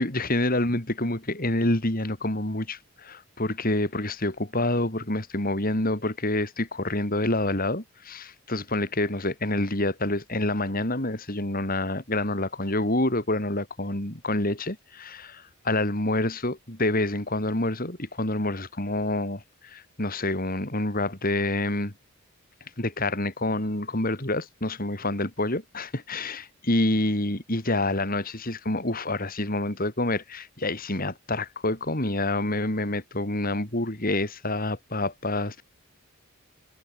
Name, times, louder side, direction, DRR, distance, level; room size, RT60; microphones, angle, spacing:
voice 1, 0.0-21.9 22.8-35.6, left 1 dB, 40° left, 3.7 m, -27 dB
head